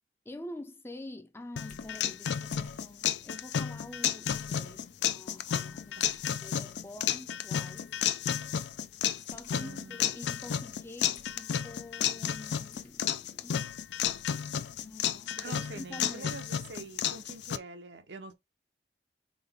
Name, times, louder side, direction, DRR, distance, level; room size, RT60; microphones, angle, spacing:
voice 1, 0.3-8.0 9.2-13.6 14.8-16.4, left 1 dB, 15° left, 0.5 m, -47 dB
sound 1, 1.6-17.6, left 9 dB, 75° left, 0.4 m, -32 dB
sound 2, 1.7-1.9 2.5-2.8 4.3-4.6 6.0-6.3 7.8-8.0 9.3-9.5 11.1-11.4 12.7-12.9 14.0-14.3, left 4 dB, 45° left, 1.1 m, -53 dB
voice 2, 9.5-10.0 15.4-18.3, right 3 dB, 75° right, 0.7 m, -45 dB
3.9 x 3.8 x 3.4 m
head